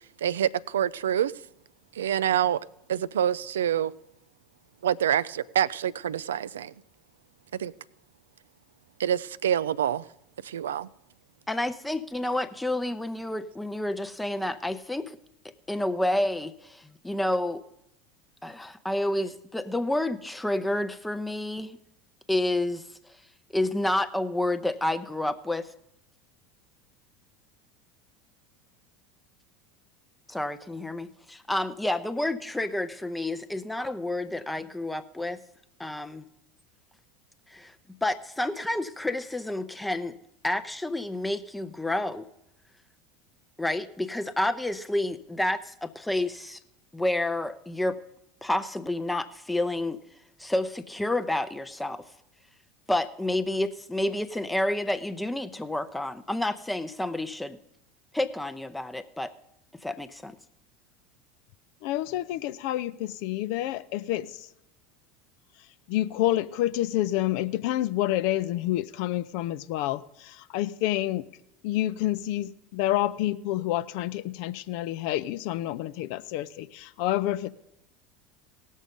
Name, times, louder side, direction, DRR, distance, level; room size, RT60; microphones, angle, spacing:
voice 1, 0.2-1.3 2.0-2.6 2.9-3.9 4.8-6.7 7.6-7.7 9.0-10.0 10.4-10.9, right 10 dB, 75° right, 0.3 m, -26 dB
voice 2, 11.5-15.2 15.7-17.6 18.4-21.8 22.3-22.8 23.5-25.7 30.3-35.4 35.8-36.2 37.5-37.7 38.0-40.2 40.4-42.3 43.6-46.6 46.9-48.0 48.4-50.0 50.4-52.0 52.9-57.6 58.1-59.3 59.8-60.3, left 1 dB, 5° left, 0.6 m, -29 dB
voice 3, 61.8-64.5 65.9-71.3 71.6-77.5, left 14 dB, 60° left, 0.5 m, -28 dB
17.5 x 6.4 x 5.2 m
figure-of-eight pair, 75°, 0 cm